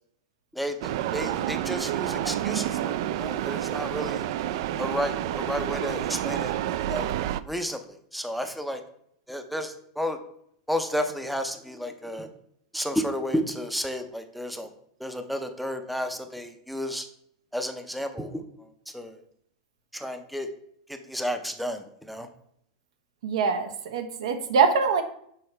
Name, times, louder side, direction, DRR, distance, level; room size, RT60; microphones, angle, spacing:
voice 1, 0.5-4.2 4.8-6.6 6.8-7.1 7.4-7.8 8.1-8.8 9.3-10.2 10.7-12.3 12.7-14.7 15.0-17.1 17.5-18.4 18.9-19.2 19.9-20.5 20.9-22.3, equal, ahead, 7 dB, 0.5 m, -32 dB
sound 1, 0.8-7.4, right 12 dB, 55° right, 0.3 m, -29 dB
voice 2, 23.2-25.0, right 5 dB, 90° right, 7 dB, 1.1 m, -23 dB
6.5 x 4.2 x 5.5 m, 0.69 s
supercardioid pair, 160°, 3 cm